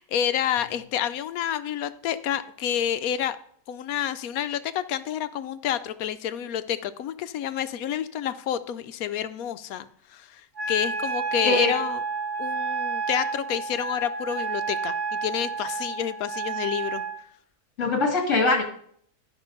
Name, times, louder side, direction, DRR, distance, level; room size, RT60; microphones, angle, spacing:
voice 1, 0.0-3.4 3.7-12.0 12.4-17.1, left 10 dB, 70° left, 12 dB, 1.0 m, -29 dB
Wind instrument woodwind instrument, 10.6-17.2, right 4 dB, 40° right, 3.6 m, -30 dB
voice 2, 11.4-11.8 17.8-18.6, left 2 dB, 50° left, 3 dB, 2.0 m, -22 dB
12.0 x 5.2 x 5.3 m, 0.62 s
omnidirectional pair, 1.8 m